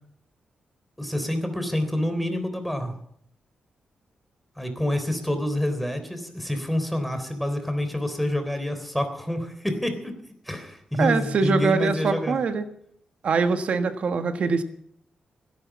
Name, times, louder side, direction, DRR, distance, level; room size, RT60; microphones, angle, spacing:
voice 1, 1.0-2.9 4.6-10.1 10.5-12.4, left 1 dB, ahead, 8 dB, 3.5 m, -27 dB
voice 2, 11.0-12.6 13.2-14.6, right 4 dB, 65° right, 8 dB, 1.4 m, -23 dB
17.0 x 11.0 x 7.3 m, 0.71 s
cardioid pair, 90°, 2 cm